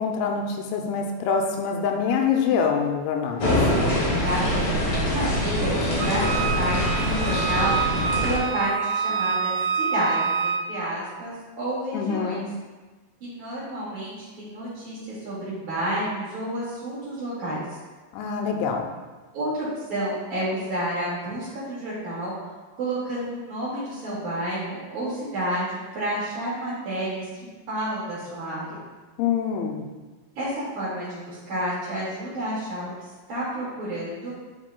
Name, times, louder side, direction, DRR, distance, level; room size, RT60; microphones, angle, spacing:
voice 1, 0.0-3.6 11.9-12.5 18.1-18.9 29.2-29.9, left 6 dB, 85° left, 2 dB, 2.9 m, -25 dB
sound 1, 3.4-8.4, left 1 dB, 60° left, 1.4 m, -24 dB
voice 2, 4.2-12.4 13.2-17.6 19.3-22.3 22.7-27.3 27.7-28.8 30.4-32.9 33.3-34.3, right 1 dB, 50° right, -9 dB, 3.0 m, -30 dB
Wind instrument woodwind instrument, 6.0-10.7, right 6 dB, 80° right, 3.4 m, -27 dB
11.0 x 4.4 x 2.2 m, 1.3 s
omnidirectional pair, 5.3 m